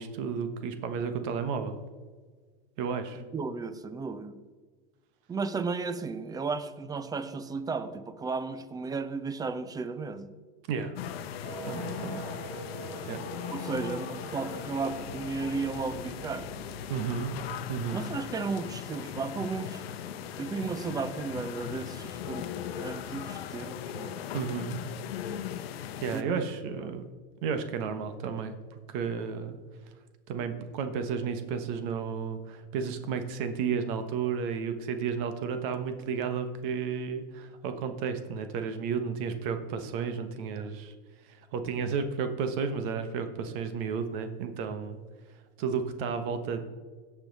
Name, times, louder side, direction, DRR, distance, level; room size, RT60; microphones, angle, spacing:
voice 1, 0.0-1.8 2.8-3.2 10.7-10.9 11.7-12.3 13.0-13.2 16.9-17.3 17.7-18.0 24.3-24.8 26.0-27.0 27.4-28.5 28.9-29.6 30.3-40.9 41.5-45.0 45.6-46.6, right 6 dB, 60° right, 8 dB, 1.2 m, -32 dB
voice 2, 3.3-4.4 5.3-10.3 12.0-12.2 12.6-12.7 13.5-16.5 17.9-19.8 20.4-22.5 22.8-24.2 26.1-26.4 26.8-26.9 40.5-40.7, right 4 dB, 10° right, 12 dB, 0.6 m, -34 dB
sound 1, 11.0-26.2, left 9 dB, 75° left, 0.8 m, -39 dB
sound 2, 11.4-18.1, right 5 dB, 75° right, 2.9 m, -45 dB
16.0 x 5.8 x 4.0 m, 1.4 s
supercardioid pair, 125°, 30 cm